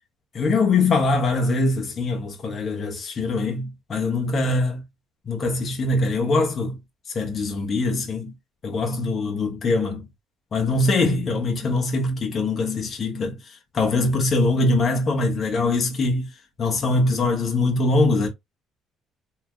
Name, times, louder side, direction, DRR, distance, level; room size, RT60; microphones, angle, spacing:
voice 1, 0.3-4.8 5.3-6.8 7.1-8.3 8.6-10.1 10.5-13.4 13.7-16.3 16.6-18.3, left 3 dB, 45° left, 1.2 m, -22 dB
3.3 x 2.9 x 2.3 m
cardioid pair, 90°, 0 cm